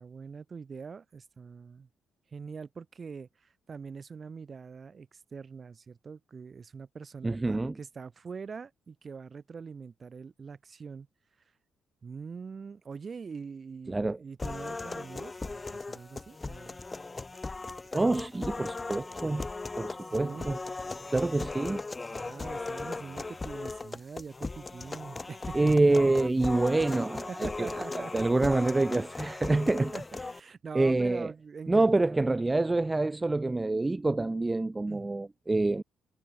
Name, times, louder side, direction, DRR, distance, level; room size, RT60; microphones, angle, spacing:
voice 1, 0.0-1.9 2.3-11.1 12.0-16.8 20.0-20.5 22.1-25.7 27.3-28.3 29.8-32.2 34.9-35.1, right 5 dB, 40° right, 4.7 m, -43 dB
voice 2, 7.2-7.8 13.9-14.2 17.9-19.5 19.8-20.6 21.1-21.8 25.5-29.9 30.7-31.3 31.7-35.8, right 2 dB, 20° right, 0.7 m, -26 dB
sound 1, 14.4-30.4, left 3 dB, 25° left, 0.9 m, -38 dB
supercardioid pair, 70°, 0 cm